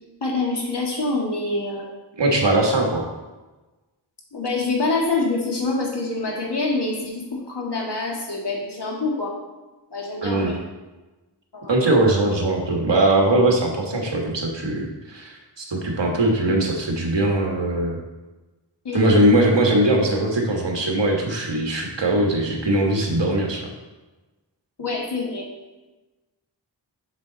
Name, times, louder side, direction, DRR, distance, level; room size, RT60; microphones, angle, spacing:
voice 1, 0.2-1.9 4.3-9.3 9.9-10.5 11.5-11.7 18.8-19.2 22.1-22.3 24.8-25.5, left 3 dB, 60° left, -2 dB, 2.0 m, -26 dB
voice 2, 2.2-3.1 10.2-10.6 11.7-18.0 18.9-23.7, right 1 dB, 65° right, 0 dB, 1.6 m, -20 dB
7.2 x 6.6 x 4.0 m, 1.1 s
wide cardioid pair, 60°, 46 cm